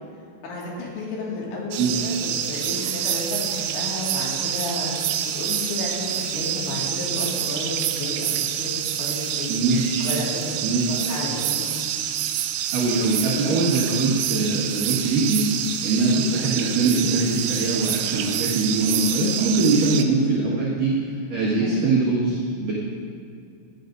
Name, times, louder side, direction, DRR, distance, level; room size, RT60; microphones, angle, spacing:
voice 1, 0.4-4.9 5.3-9.6 10.0-10.6 11.1-11.8 21.6-21.8, left 2 dB, 75° left, -4 dB, 4.3 m, -32 dB
sound 1, 1.7-20.0, right 10 dB, 90° right, 3.1 m, -27 dB
voice 2, 9.5-10.1 10.6-10.8 12.7-15.5 15.8-20.9 21.3-22.7, right 3 dB, 55° right, -7 dB, 2.7 m, -22 dB
16.5 x 11.5 x 2.6 m, 2.4 s
omnidirectional pair, 5.4 m